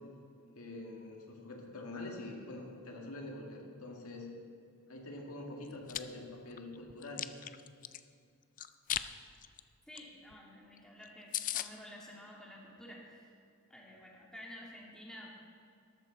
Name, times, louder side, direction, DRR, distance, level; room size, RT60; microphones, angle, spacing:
voice 1, 0.5-4.3 4.9-7.3, left 2 dB, 85° left, 0 dB, 1.9 m, -45 dB
Chewing mastication, 5.6-6.0 6.5-8.0 8.6-9.1 9.4-9.6 10.0-10.1 10.3-10.4 10.8-10.9 11.0-11.1 11.3-11.7, left 12 dB, 40° left, 0.4 m, -36 dB
voice 2, 9.9-13.4 13.7-15.3, left 1 dB, 5° left, -3 dB, 2.1 m, -51 dB
13.0 x 12.5 x 4.0 m, 2.4 s
head